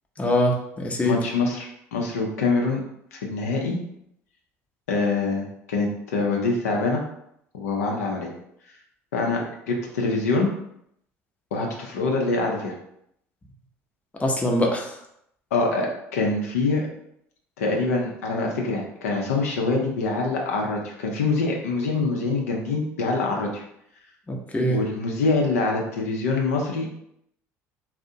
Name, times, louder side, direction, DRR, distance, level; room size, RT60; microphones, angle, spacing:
voice 1, 0.2-1.2 14.2-14.9 24.3-24.8, left 1 dB, 15° left, 0 dB, 0.6 m, -23 dB
voice 2, 1.0-2.8 3.1-3.8 4.9-7.0 7.5-8.3 9.1-9.4 9.7-10.5 11.5-12.7 15.5-16.9 17.6-23.6 24.7-26.9, left 3 dB, 85° left, 0 dB, 0.5 m, -25 dB
2.4 x 2.0 x 2.6 m, 0.74 s
hypercardioid pair, 65°, 8 cm